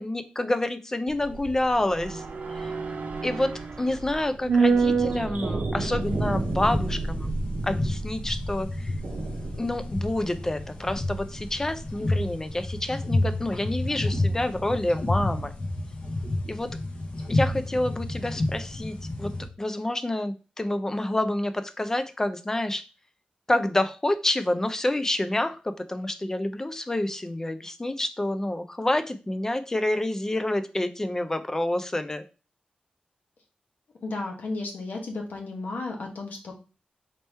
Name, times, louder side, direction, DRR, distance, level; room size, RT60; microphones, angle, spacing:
voice 1, 0.0-2.2 2.5-2.7 3.2-7.3 7.6-8.9 9.6-15.5 16.5-16.8 17.3-19.3 19.6-22.8 23.5-32.2, left 1 dB, 20° left, 10 dB, 0.4 m, -28 dB
sound 1, 1.1-11.5 11.8-11.9, right 4 dB, 70° right, 0.7 m, -29 dB
sound 2, 6.0-19.5, left 1 dB, 40° left, 0.8 m, -30 dB
voice 2, 34.0-36.5, left 3 dB, 75° left, 1 dB, 1.2 m, -33 dB
4.3 x 3.0 x 3.3 m, 0.33 s
wide cardioid pair, 145°, 3 cm